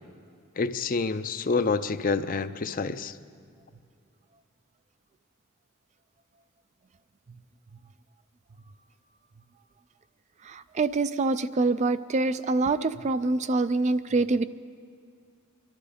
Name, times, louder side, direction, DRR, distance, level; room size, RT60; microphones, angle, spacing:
voice 1, 0.6-3.1, left 4 dB, 40° left, 12 dB, 0.5 m, -27 dB
voice 2, 10.5-14.5, right 3 dB, 35° right, 13 dB, 0.3 m, -25 dB
23.5 x 12.0 x 5.0 m, 2.3 s
head